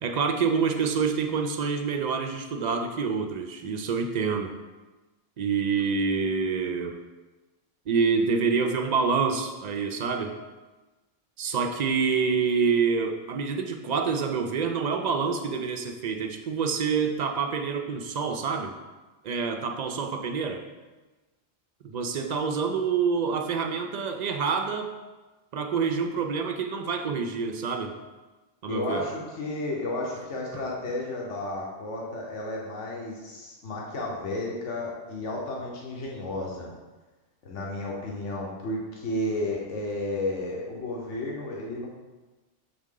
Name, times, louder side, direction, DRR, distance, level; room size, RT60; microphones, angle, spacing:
voice 1, 0.0-4.5 5.4-7.0 7.9-10.4 11.4-18.7 19.2-20.6 21.8-24.9 25.5-27.9 28.6-29.1 30.5-30.6, right 5 dB, 60° right, 5 dB, 0.4 m, -27 dB
voice 2, 28.7-36.7 37.4-41.9, left 2 dB, 85° left, -3 dB, 1.3 m, -32 dB
6.9 x 3.6 x 3.7 m, 1.2 s
omnidirectional pair, 1.2 m